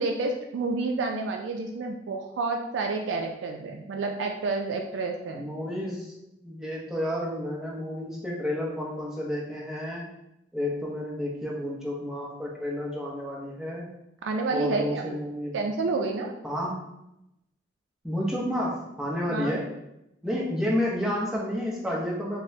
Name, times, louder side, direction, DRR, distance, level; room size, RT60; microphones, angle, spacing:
voice 1, 0.0-5.5 14.2-15.2 15.5-16.3 19.3-19.5, right 3 dB, 80° right, 3 dB, 0.4 m, -29 dB
voice 2, 5.3-6.1 6.4-10.1 10.5-13.9 14.5-15.6 16.4-16.8 18.0-19.6 20.2-22.4, left 1 dB, 5° right, -5 dB, 0.7 m, -30 dB
5.2 x 2.1 x 2.7 m, 0.86 s
head